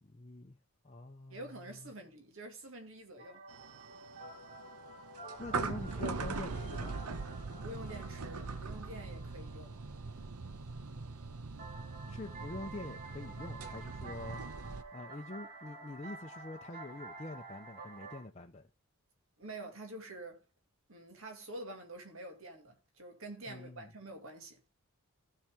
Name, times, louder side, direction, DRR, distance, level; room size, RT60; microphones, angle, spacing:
voice 1, 0.0-0.6 0.8-1.9 5.4-7.0 12.1-14.4 14.9-18.7 23.5-23.9, left 2 dB, 30° left, 0.6 m, -46 dB
voice 2, 1.3-3.4 7.6-9.8 19.4-20.4 20.9-24.6, right 1 dB, 65° right, 2.2 m, -47 dB
sound 1, 3.2-10.6 11.6-18.2, right 3 dB, 40° right, 3.6 m, -50 dB
sound 2, 3.5-14.8, right 4 dB, 85° right, 0.9 m, -41 dB
15.5 x 5.8 x 3.5 m
head